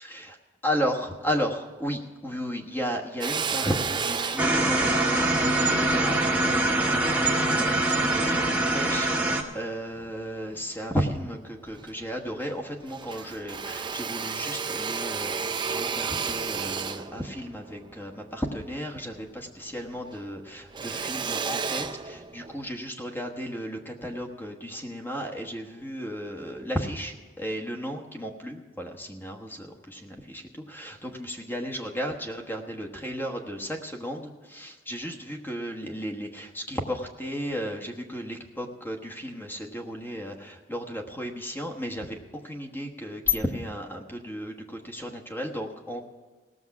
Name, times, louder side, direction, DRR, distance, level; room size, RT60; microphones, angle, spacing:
voice 1, 0.0-0.3 0.6-46.0, equal, 10° left, 3 dB, 1.3 m, -34 dB
Drill, 3.2-7.7 8.3-9.5 9.9-10.9 11.2-11.3 11.6-12.6 12.8-19.5 19.8-22.7, right 5 dB, 25° right, 0.5 m, -33 dB
sound 1, 4.4-9.4, right 2 dB, 10° right, 1.2 m, -23 dB
18.0 x 7.1 x 5.9 m, 1.4 s
head